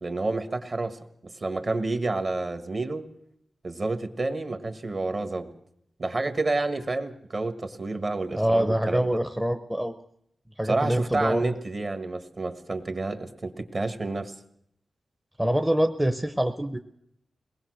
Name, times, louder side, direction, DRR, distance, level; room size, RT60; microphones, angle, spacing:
voice 1, 0.0-3.0 3.6-5.5 6.0-9.2 10.6-14.3, right 2 dB, 40° right, 8 dB, 1.6 m, -29 dB
voice 2, 8.3-10.0 10.6-11.5 15.4-16.8, equal, 5° right, 7 dB, 0.7 m, -25 dB
22.0 x 19.0 x 6.4 m, 0.72 s
wide cardioid pair, 155°, 0 cm